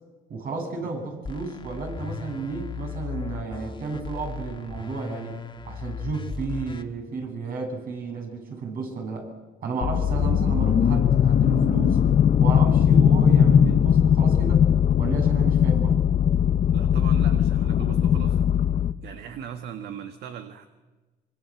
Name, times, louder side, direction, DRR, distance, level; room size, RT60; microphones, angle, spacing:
voice 1, 0.3-5.3 5.6-9.3 9.6-12.0 12.4-14.6 15.0-16.0, right 4 dB, 60° right, 2 dB, 8.0 m, -32 dB
sound 1, 1.2-6.8, left 5 dB, 25° left, 2.0 m, -36 dB
sound 2, 9.8-18.9, left 8 dB, 45° left, 1.0 m, -19 dB
voice 2, 16.7-18.4 19.0-20.7, right 8 dB, 75° right, 8 dB, 1.7 m, -38 dB
25.0 x 24.5 x 7.8 m, 1.2 s
cardioid pair, 110°, 17 cm